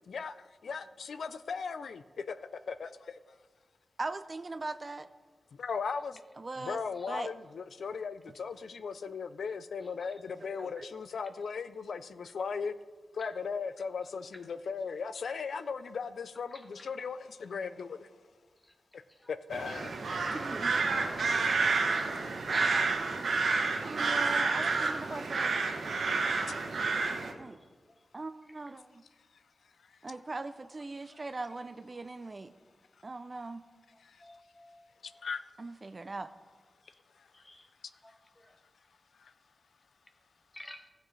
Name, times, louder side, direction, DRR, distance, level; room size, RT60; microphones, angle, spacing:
voice 1, 0.1-3.2 5.6-6.2 6.6-12.7 13.1-18.1 18.9-19.0 19.3-19.9 23.6-23.7 25.1-25.2 34.0-34.2 35.0-35.4 39.2-39.3, left 5 dB, 75° left, 12 dB, 0.3 m, -38 dB
voice 2, 4.0-5.1 6.4-6.8 7.1-7.3 10.4-10.9 20.3-20.7 23.8-25.5 27.4-27.6 28.1-29.0 30.0-32.5 33.0-33.6 35.6-36.3, right 3 dB, 30° right, 12 dB, 0.3 m, -40 dB
sound 1, 19.5-27.3, right 4 dB, 70° right, 1.0 m, -30 dB
voice 3, 22.5-23.3 23.8-24.0 25.9-26.0 33.4-33.5 34.2-34.7 37.5-37.6 40.5-40.8, left 1 dB, 15° left, 6 dB, 0.9 m, -46 dB
15.0 x 7.4 x 3.2 m, 1.4 s
wide cardioid pair, 150°, 0 cm